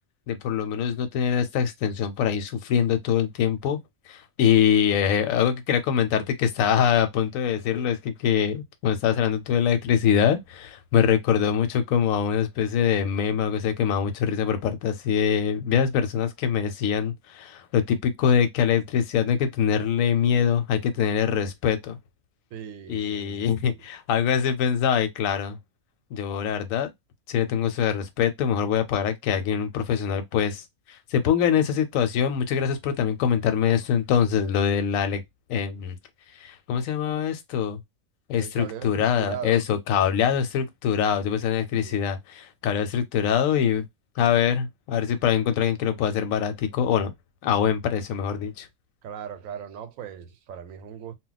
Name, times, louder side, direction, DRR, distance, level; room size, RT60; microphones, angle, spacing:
voice 1, 0.3-3.8 4.1-22.0 22.9-25.6 26.1-26.9 27.3-35.2 35.5-36.0 36.3-37.8 38.3-43.9 44.2-47.1 47.4-48.7, left 8 dB, 85° left, 1.0 m, -24 dB
voice 2, 22.5-23.8 38.4-39.6 41.7-42.0 49.0-51.1, right 8 dB, 85° right, 1.0 m, -38 dB
2.3 x 2.1 x 3.8 m
omnidirectional pair, 1.4 m